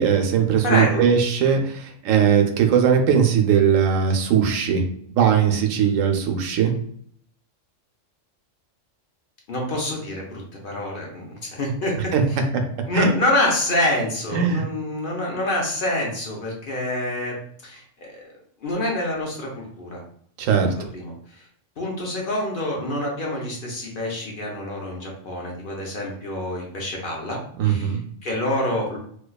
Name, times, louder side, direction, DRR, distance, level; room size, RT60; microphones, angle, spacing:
voice 1, 0.0-4.8 5.2-6.7 12.1-12.2 12.5-12.6 12.9-13.1 14.3-14.6 20.4-20.7 27.6-28.0, right 7 dB, 85° right, 4 dB, 1.0 m, -19 dB
voice 2, 0.6-1.0 9.5-12.4 12.9-17.4 17.6-18.2 18.6-20.0 20.6-21.4 21.8-27.4 27.6-29.0, left 1 dB, 50° left, -2 dB, 0.8 m, -27 dB
4.4 x 2.3 x 2.3 m, 0.65 s
omnidirectional pair, 1.3 m